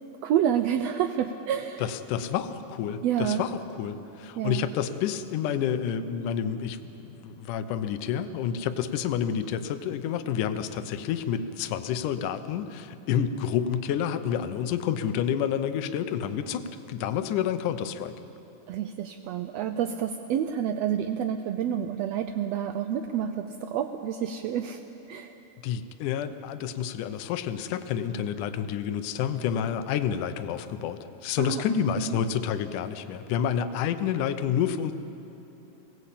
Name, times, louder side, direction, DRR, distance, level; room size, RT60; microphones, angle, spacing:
voice 1, 0.2-1.8 3.0-3.4 4.3-4.6 18.7-24.8 25.1-25.3 31.4-31.6 32.0-32.2, right 9 dB, 85° right, 8 dB, 1.4 m, -28 dB
voice 2, 1.8-18.1 25.6-34.9, left 8 dB, 80° left, 10 dB, 2.4 m, -29 dB
22.0 x 17.5 x 8.5 m, 3.0 s
omnidirectional pair, 3.8 m